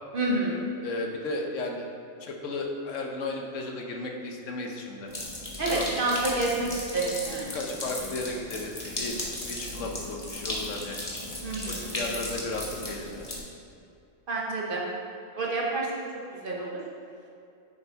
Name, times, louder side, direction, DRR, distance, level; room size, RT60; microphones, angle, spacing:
voice 1, 0.1-0.7 5.6-7.5 11.4-12.0 14.3-14.8 15.3-15.9 16.4-16.8, right 2 dB, 45° right, -3 dB, 1.3 m, -28 dB
voice 2, 0.8-1.9 2.2-5.1 5.7-5.8 7.5-9.2 9.5-11.0 11.7-13.4, left 2 dB, 85° left, 2 dB, 1.2 m, -34 dB
sound 1, 5.1-13.4, left 1 dB, 30° left, 1.3 m, -36 dB
6.9 x 5.5 x 4.6 m, 2.6 s
omnidirectional pair, 1.3 m